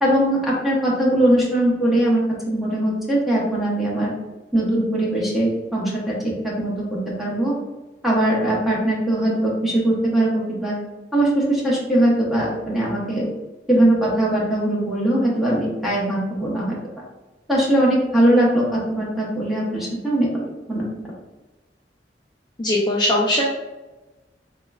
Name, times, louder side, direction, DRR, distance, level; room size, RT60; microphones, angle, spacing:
voice 1, 0.0-4.1 4.5-7.5 8.0-10.7 11.1-13.3 13.7-16.7 17.5-20.4 20.7-20.8, right 1 dB, ahead, -6 dB, 0.7 m, -20 dB
voice 2, 22.6-23.5, left 1 dB, 25° left, -5 dB, 0.3 m, -20 dB
3.6 x 2.1 x 2.2 m, 1.1 s
head